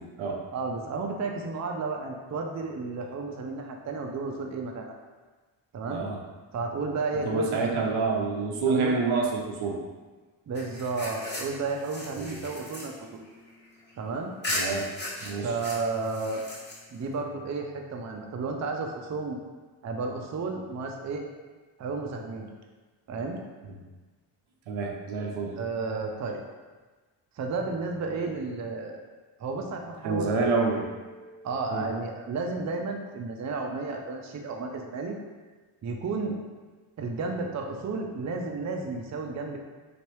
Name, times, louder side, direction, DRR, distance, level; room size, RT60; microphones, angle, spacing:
voice 1, 0.0-0.4 5.9-6.2 7.2-9.8 12.2-12.4 14.5-14.9 15.2-15.5 24.7-25.5 30.0-31.9, right 4 dB, 75° right, 0 dB, 0.7 m, -28 dB
voice 2, 0.5-5.0 5.7-6.0 6.5-7.7 8.7-9.0 10.5-13.2 14.0-14.3 15.4-16.4 16.9-19.4 19.8-21.2 21.8-22.5 23.1-23.4 25.6-26.4 27.4-29.0 29.4-30.5 31.4-35.2 35.8-36.3 37.0-39.6, right 3 dB, 35° right, 2 dB, 0.5 m, -32 dB
sound 1, 10.6-14.0 14.4-17.1, left 1 dB, 20° left, 1.1 m, -37 dB
3.0 x 2.5 x 3.1 m, 1.3 s
supercardioid pair, 45°, 49 cm